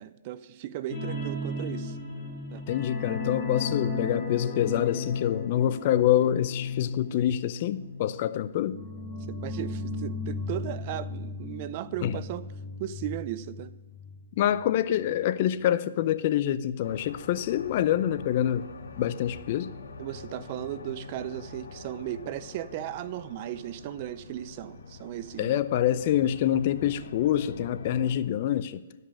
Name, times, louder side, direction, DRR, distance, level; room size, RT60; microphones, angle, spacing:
voice 1, 0.0-2.0 2.5-2.6 9.3-12.4 12.8-13.8 20.0-25.6, right 13 dB, 40° right, 0.5 m, -36 dB
sound 1, 0.9-14.2 14.5-14.6 15.0-15.1, left 3 dB, 20° left, 2.8 m, -35 dB
voice 2, 2.7-8.8 12.0-12.2 14.4-18.7 19.0-19.7 25.4-28.8, left 11 dB, 45° left, 0.5 m, -26 dB
sound 2, 16.8-28.1, left 3 dB, 75° left, 1.2 m, -44 dB
12.0 x 5.4 x 6.1 m
hypercardioid pair, 140°, 0 cm